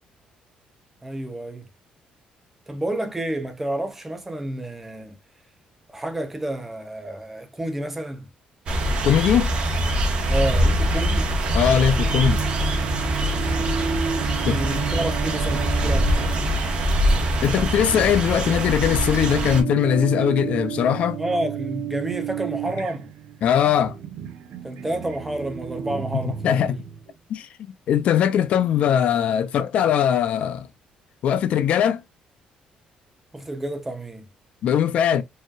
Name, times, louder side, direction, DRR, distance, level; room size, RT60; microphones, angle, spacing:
voice 1, 1.0-1.7 2.7-5.1 5.9-8.3 10.3-11.3 14.5-16.4 21.2-23.1 24.6-26.8 33.3-34.3, right 1 dB, 10° right, 0.7 m, -30 dB
sound 1, 8.7-19.6, right 1 dB, 40° right, 1.1 m, -23 dB
voice 2, 9.0-9.5 11.5-12.4 14.4-14.6 17.4-21.2 23.4-24.0 26.4-26.8 27.3-30.7 31.2-32.0 34.6-35.2, left 9 dB, 55° left, 0.5 m, -20 dB
sound 2, 12.0-27.1, right 8 dB, 80° right, 0.6 m, -32 dB
4.6 x 3.1 x 2.3 m
cardioid pair, 175°, 3 cm